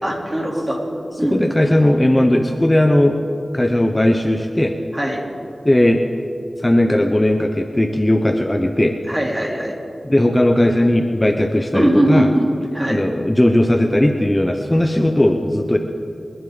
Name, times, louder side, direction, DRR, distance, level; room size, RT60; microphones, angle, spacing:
voice 1, 0.0-0.8 1.2-1.7 4.9-5.2 9.1-9.8 11.7-12.5 12.7-13.0, right 1 dB, 20° right, -1 dB, 3.2 m, -20 dB
voice 2, 1.2-3.2 3.5-4.7 5.6-6.0 6.6-8.9 10.1-12.3 12.9-15.8, left 1 dB, 20° left, 5 dB, 0.8 m, -17 dB
28.0 x 11.0 x 3.9 m, 2.6 s
wide cardioid pair, 55°, 0 cm